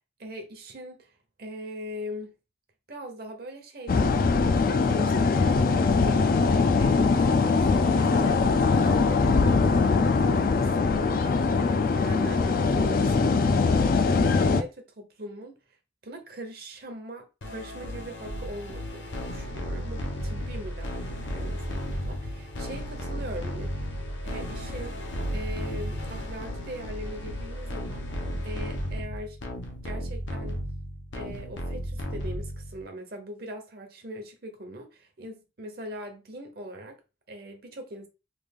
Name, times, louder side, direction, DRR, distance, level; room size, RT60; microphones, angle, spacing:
voice 1, 0.2-2.3 2.9-15.6 16.0-23.8 24.2-25.0 25.3-28.2 28.4-29.4 29.8-30.6 31.1-37.0 37.3-38.1, equal, 55° right, 0.8 m, -41 dB
sound 1, 3.9-14.6, left 4 dB, 50° left, 0.3 m, -22 dB
sound 2, 17.4-32.8, equal, 85° left, 0.8 m, -34 dB
3.3 x 2.4 x 3.6 m
head